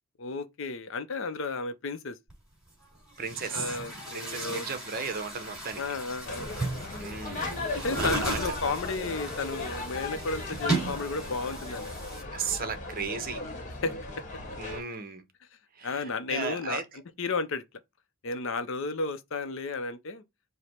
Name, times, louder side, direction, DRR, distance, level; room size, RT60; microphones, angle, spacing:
voice 1, 0.2-2.2 3.5-4.7 5.8-6.5 7.7-12.1 13.8-13.9 15.8-16.8 17.2-17.6 18.2-20.2, left 3 dB, 60° left, 0.6 m, -33 dB
Chatter / Gurgling / Tap, 2.3-2.4 3.1-12.2, right 2 dB, 5° right, 2.8 m, -36 dB
voice 2, 3.2-3.8 4.1-5.8 7.0-8.4 12.3-13.4 14.6-15.2 15.8-16.8, right 5 dB, 40° right, 0.7 m, -35 dB
sound 1, 6.2-14.8, left 2 dB, 35° left, 1.1 m, -37 dB
4.9 x 2.1 x 4.2 m
head